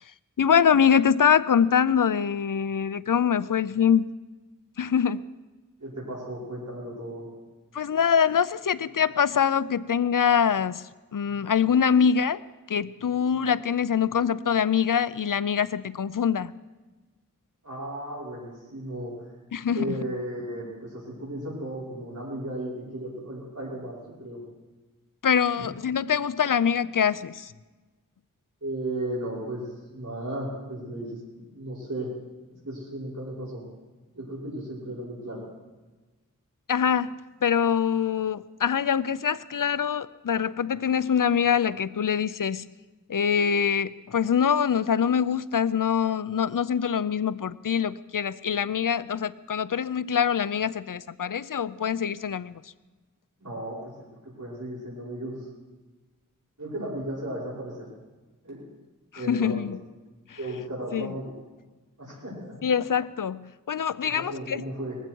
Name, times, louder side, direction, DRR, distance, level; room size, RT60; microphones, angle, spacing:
voice 1, 0.4-4.1 4.8-5.2 7.7-10.8 11.1-12.4 12.7-16.5 19.5-19.9 25.2-27.5 36.7-37.1 37.4-42.6 43.1-52.6 59.3-59.8 60.9-61.1 62.6-64.6, left 7 dB, 75° left, 17 dB, 0.5 m, -24 dB
voice 2, 5.8-7.3 17.6-19.3 19.7-24.4 25.5-25.7 28.6-31.2 31.5-32.1 32.6-33.6 34.1-35.4 53.4-53.9 54.2-55.5 56.6-57.9 58.4-58.7 59.1-59.7 60.4-61.3 62.0-62.6 64.0-65.0, right 1 dB, 65° right, -6 dB, 5.7 m, -35 dB
20.0 x 15.0 x 4.6 m, 1.2 s
wide cardioid pair, 40°, 33 cm